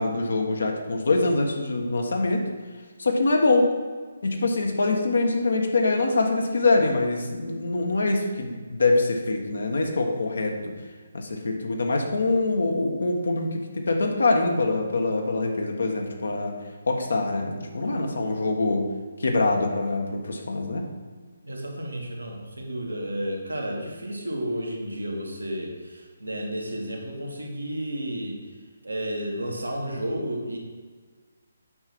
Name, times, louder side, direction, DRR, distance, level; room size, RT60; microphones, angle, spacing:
voice 1, 0.0-2.4 3.0-3.7 4.2-10.6 11.1-16.5 16.9-18.8 19.2-20.8, left 2 dB, 65° left, 2 dB, 1.4 m, -24 dB
voice 2, 21.4-28.4 28.8-30.6, right 1 dB, 80° right, 0 dB, 1.9 m, -32 dB
8.6 x 5.9 x 4.5 m, 1.5 s
figure-of-eight pair, 140°, 0 cm